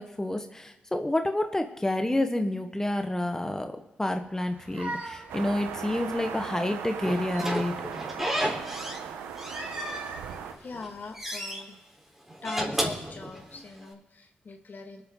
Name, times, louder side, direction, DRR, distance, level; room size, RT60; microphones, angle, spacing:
voice 1, 0.0-3.7 4.0-7.7, left 1 dB, 15° left, 6 dB, 1.2 m, -29 dB
sound 1, 4.4-6.5 7.0-8.2 9.3-11.2, right 2 dB, 70° right, 5.4 m, -41 dB
sound 2, 5.3-10.5, right 7 dB, 90° right, 1.0 m, -38 dB
Slam / Squeak, 7.0-9.1 9.4-10.3 10.7-11.6 12.3-13.8, equal, 10° right, 4.0 m, -32 dB
voice 2, 10.6-11.8 12.4-15.0, left 4 dB, 55° left, 4 dB, 2.0 m, -42 dB
24.5 x 9.3 x 3.9 m, 1.0 s
supercardioid pair, 45°, 4 cm